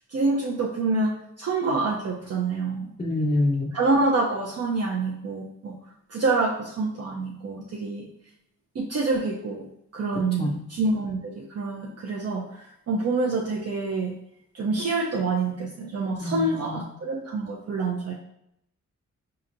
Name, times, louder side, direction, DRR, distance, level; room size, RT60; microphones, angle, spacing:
voice 1, 0.0-2.9 3.7-5.8 6.1-8.1 8.7-9.7 9.9-14.1 14.5-18.1, right 3 dB, 55° right, -2 dB, 0.5 m, -27 dB
voice 2, 3.0-3.7 10.1-10.6 16.2-16.9, left 1 dB, 20° left, -3 dB, 0.4 m, -26 dB
5.2 x 2.9 x 2.5 m, 0.77 s
wide cardioid pair, 140°, 30 cm